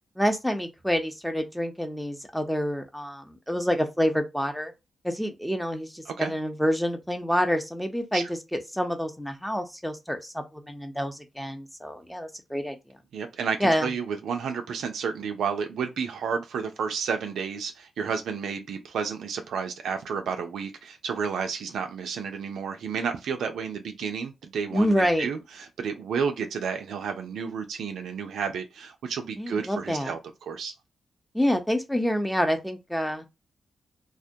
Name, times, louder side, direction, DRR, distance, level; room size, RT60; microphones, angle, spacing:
voice 1, 0.2-4.7 5.0-12.8 13.6-13.9 24.7-25.3 29.4-30.1 31.3-33.3, equal, 5° left, 0.7 m, -27 dB
voice 2, 13.1-30.7, right 6 dB, 80° right, 0.4 m, -31 dB
2.2 x 2.1 x 2.7 m
supercardioid pair, 45°, 0 cm